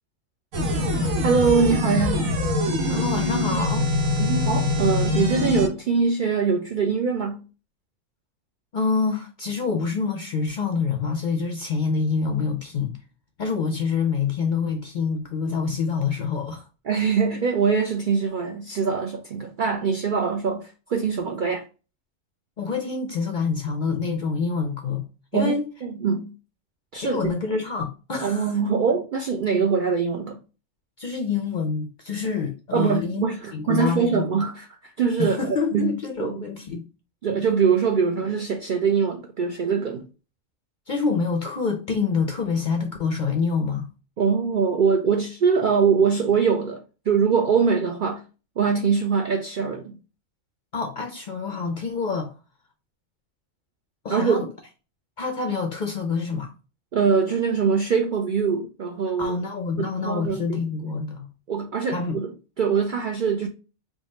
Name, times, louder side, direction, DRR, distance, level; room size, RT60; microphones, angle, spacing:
sound 1, 0.5-5.7, left 2 dB, 90° right, 1.2 m, -23 dB
voice 1, 1.2-2.2 4.2-7.4 16.9-21.6 25.3-25.6 25.8-26.3 26.9-27.3 28.2-30.4 32.7-34.7 35.0-35.4 35.7-36.4 37.2-40.0 44.2-48.2 48.6-50.0 54.1-54.5 56.9-59.4 59.8-60.6 61.5-63.5, right 5 dB, 65° right, 0.5 m, -23 dB
voice 2, 2.9-3.9 8.7-13.0 13.4-16.7 22.6-25.0 25.3-25.6 27.0-28.5 31.0-33.2 33.5-34.4 35.2-36.8 40.9-43.9 50.7-52.3 54.0-54.5 55.2-56.5 59.2-61.3 61.9-62.2, left 5 dB, 55° left, 0.5 m, -26 dB
3.6 x 2.3 x 3.9 m
omnidirectional pair, 1.4 m